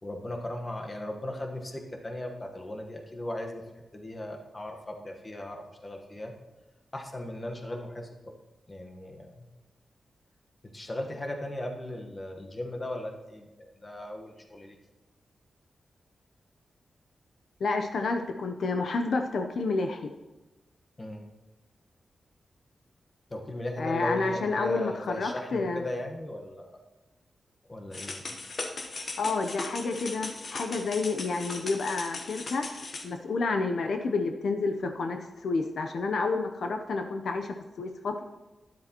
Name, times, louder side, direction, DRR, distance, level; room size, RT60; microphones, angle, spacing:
voice 1, 0.0-3.6 3.9-6.3 6.9-8.1 8.7-9.5 10.6-14.8 21.0-21.3 23.3-26.7 27.7-28.3, left 1 dB, 25° left, 2 dB, 1.2 m, -37 dB
voice 2, 17.6-20.1 23.8-25.8 29.2-32.8 33.0-38.2, left 3 dB, 70° left, 5 dB, 0.7 m, -30 dB
sound 1, 27.9-33.0, left 3 dB, 50° left, 1.0 m, -38 dB
12.0 x 10.5 x 2.9 m, 1.1 s
wide cardioid pair, 130°, 0 cm